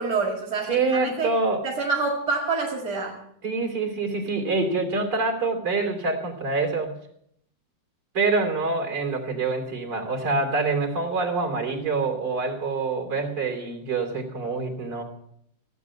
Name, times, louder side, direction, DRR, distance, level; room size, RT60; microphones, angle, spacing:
voice 1, 0.0-1.3 1.6-3.2, right 4 dB, 50° right, 0 dB, 2.6 m, -27 dB
voice 2, 0.6-1.6 3.4-6.9 8.1-15.0, right 3 dB, 65° right, 3 dB, 3.6 m, -26 dB
15.5 x 8.4 x 8.1 m, 0.70 s
omnidirectional pair, 2.0 m